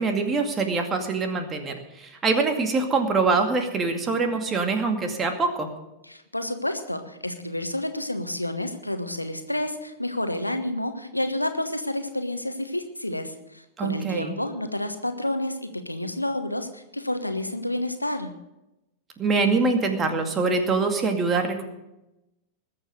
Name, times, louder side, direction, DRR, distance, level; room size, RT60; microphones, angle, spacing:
voice 1, 0.0-5.7 13.8-14.4 19.2-21.6, right 4 dB, 20° right, 5 dB, 2.3 m, -24 dB
voice 2, 6.0-18.3, left 1 dB, 85° left, 8 dB, 1.2 m, -30 dB
20.5 x 7.6 x 6.5 m, 0.93 s
figure-of-eight pair, 90°, 0 cm